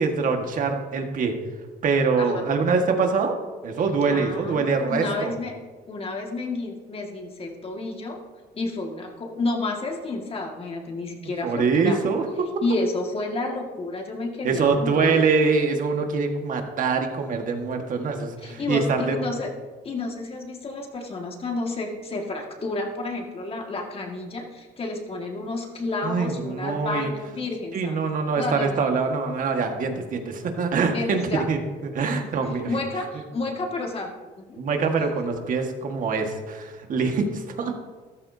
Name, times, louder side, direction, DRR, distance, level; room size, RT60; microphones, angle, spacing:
voice 1, 0.0-1.3 1.8-3.3 3.6-5.4 11.4-12.3 14.4-19.2 26.0-27.1 27.7-31.2 31.5-32.7 34.6-37.8, right 4 dB, 50° right, 4 dB, 1.7 m, -24 dB
voice 2, 4.0-5.6 5.9-8.2 8.5-12.0 12.6-15.2 18.4-19.5 19.8-28.0 28.4-28.9 30.9-31.5 32.1-32.2 32.7-34.1 34.4-34.6, left 2 dB, 35° left, 1 dB, 2.0 m, -30 dB
13.5 x 13.0 x 2.8 m, 1.4 s
cardioid pair, 110°, 17 cm